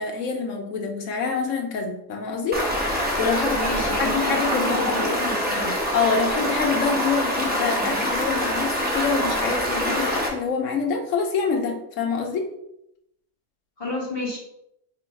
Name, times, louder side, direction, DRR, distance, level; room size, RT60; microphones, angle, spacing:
voice 1, 0.0-2.7 3.2-3.6 4.0-5.0 5.9-12.5, left 5 dB, 65° left, 3 dB, 0.9 m, -26 dB
Stream, 2.5-10.3, equal, 15° right, 0.3 m, -25 dB
voice 2, 3.5-5.8 13.8-14.4, left 1 dB, 35° left, -5 dB, 1.5 m, -30 dB
3.1 x 3.0 x 4.6 m, 0.80 s
omnidirectional pair, 1.6 m